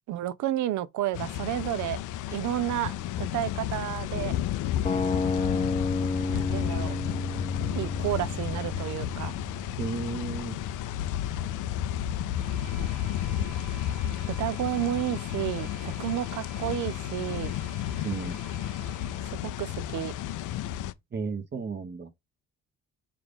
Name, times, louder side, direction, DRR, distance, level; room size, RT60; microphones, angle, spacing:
voice 1, 0.1-2.0 2.3-4.4 6.3-7.0 7.7-9.3 14.3-17.5 19.3-20.1, right 13 dB, 70° right, 0.5 m, -31 dB
sound 1, 1.1-20.9, left 11 dB, 80° left, 0.5 m, -32 dB
sound 2, 4.8-10.9, left 3 dB, 25° left, 0.7 m, -31 dB
voice 2, 9.8-10.6 18.0-18.4 21.1-22.1, right 5 dB, 35° right, 1.0 m, -33 dB
sound 3, 12.3-19.3, right 5 dB, 85° right, 1.2 m, -50 dB
4.6 x 2.5 x 3.5 m
cardioid pair, 90°, 30 cm